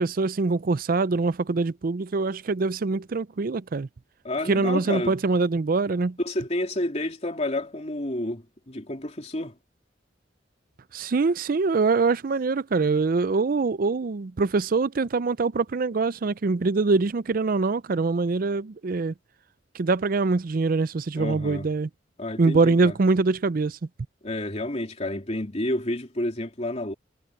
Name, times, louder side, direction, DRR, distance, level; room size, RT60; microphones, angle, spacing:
voice 1, 0.0-3.9 4.5-6.2 10.9-19.1 19.7-21.9 22.4-23.8, right 3 dB, 50° right, 0.5 m, -24 dB
voice 2, 4.2-5.2 6.2-9.5 21.2-21.7 22.2-22.9 24.2-26.9, left 1 dB, 35° left, 3.0 m, -30 dB
head